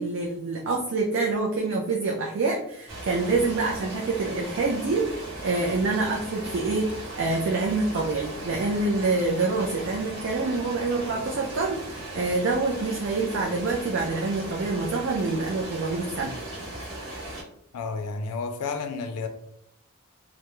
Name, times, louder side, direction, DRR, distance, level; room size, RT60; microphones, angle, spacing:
voice 1, 0.0-5.0 5.4-16.3, right 3 dB, 55° right, -2 dB, 0.3 m, -26 dB
sound 1, 2.9-17.4, right 1 dB, 25° right, 0.9 m, -38 dB
voice 2, 17.7-19.3, left 4 dB, 90° left, 6 dB, 0.4 m, -31 dB
2.2 x 2.0 x 2.9 m, 0.72 s
head